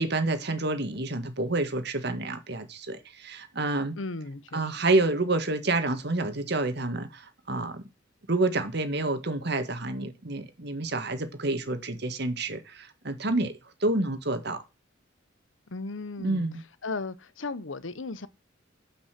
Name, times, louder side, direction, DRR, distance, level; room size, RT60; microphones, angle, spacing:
voice 1, 0.0-4.0 4.5-7.9 8.3-13.5 13.8-14.6 16.2-16.6, right 2 dB, 60° right, 1.8 m, -28 dB
voice 2, 4.0-4.7 15.7-16.5 16.8-18.3, left 3 dB, 90° left, 1.0 m, -36 dB
11.5 x 5.7 x 6.0 m
head